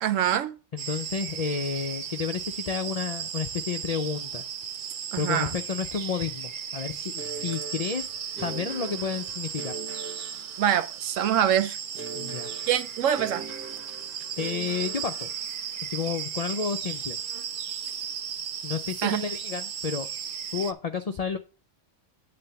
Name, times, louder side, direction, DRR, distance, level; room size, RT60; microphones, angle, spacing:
voice 1, 0.0-0.5 5.1-5.5 10.6-11.8 12.7-13.4 19.0-19.2, right 10 dB, 80° right, 1.1 m, -24 dB
voice 2, 0.7-4.4 5.2-8.1 8.4-9.7 12.1-12.5 14.4-15.3 15.8-17.2 18.6-20.1 20.5-21.4, left 6 dB, 65° left, 0.4 m, -31 dB
sound 1, 0.8-20.7, right 8 dB, 55° right, 0.6 m, -36 dB
sound 2, 7.2-11.1 12.0-15.8, right 4 dB, 10° right, 0.7 m, -42 dB
8.9 x 3.4 x 6.7 m
omnidirectional pair, 1.3 m